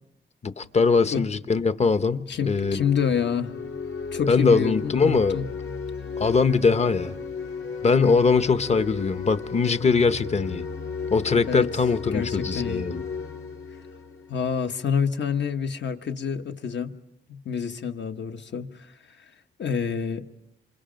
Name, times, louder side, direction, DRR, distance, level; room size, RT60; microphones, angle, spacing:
voice 1, 0.4-2.8 4.3-5.4 6.2-7.1 7.8-10.6 11.1-13.0, left 4 dB, 35° left, 0.9 m, -22 dB
sound 1, 2.3-15.0, left 5 dB, 85° left, 4.1 m, -34 dB
voice 2, 2.3-3.5 4.1-5.5 11.5-11.7 12.1-12.9 14.3-16.9 17.3-18.9 19.6-20.3, left 6 dB, 65° left, 1.3 m, -27 dB
28.0 x 27.0 x 5.2 m
wide cardioid pair, 140°, 20 cm